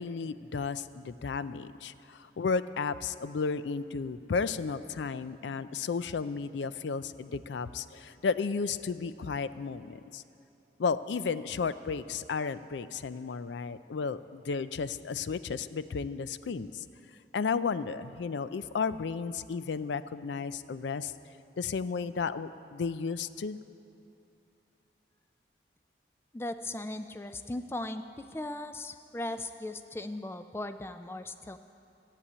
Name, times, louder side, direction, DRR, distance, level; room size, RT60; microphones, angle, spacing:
voice 1, 0.0-10.2 10.8-16.8 17.3-21.1 21.6-23.6, left 5 dB, 80° left, 14 dB, 0.4 m, -33 dB
voice 2, 26.3-31.6, left 2 dB, 15° left, 10 dB, 0.3 m, -38 dB
14.0 x 8.4 x 8.5 m, 2.7 s
head